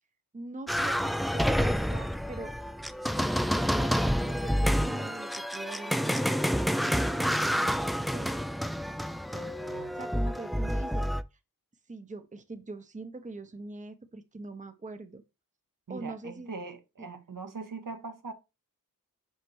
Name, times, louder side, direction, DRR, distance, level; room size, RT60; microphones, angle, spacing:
voice 1, 0.3-2.5 3.1-8.3 9.3-11.1 11.9-15.2 15.9-16.5 17.0-17.1, right 3 dB, 20° right, 0.8 m, -43 dB
sound 1, 0.7-11.2, equal, ahead, 0.4 m, -28 dB
voice 2, 9.7-10.0 15.9-18.3, right 4 dB, 65° right, 1.0 m, -41 dB
6.3 x 5.8 x 3.1 m
wide cardioid pair, 60°, 35 cm